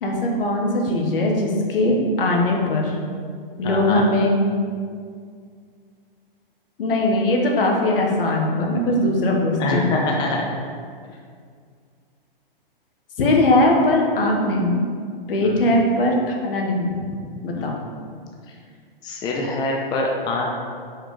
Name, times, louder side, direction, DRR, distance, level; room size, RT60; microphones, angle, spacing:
voice 1, 0.0-3.0 3.6-4.4 6.8-9.9 13.2-14.8 15.3-17.0 17.4-17.7, left 1 dB, 70° left, 0 dB, 1.3 m, -20 dB
voice 2, 3.6-4.0 9.6-10.5 15.4-15.7 17.6-17.8 19.0-20.5, left 2 dB, 15° left, -1 dB, 0.5 m, -25 dB
4.8 x 4.4 x 4.7 m, 2.1 s
hypercardioid pair, 125°, 29 cm